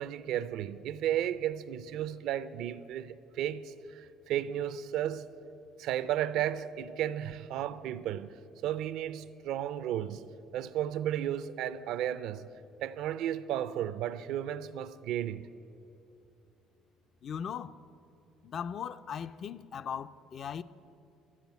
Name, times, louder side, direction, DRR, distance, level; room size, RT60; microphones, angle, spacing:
voice 1, 0.0-5.2 5.8-12.5 12.8-15.5, right 11 dB, 65° right, 0.5 m, -34 dB
voice 2, 17.2-17.8 18.4-20.6, left 8 dB, 40° left, 0.3 m, -38 dB
12.5 x 8.6 x 9.3 m
cardioid pair, 155°, 0 cm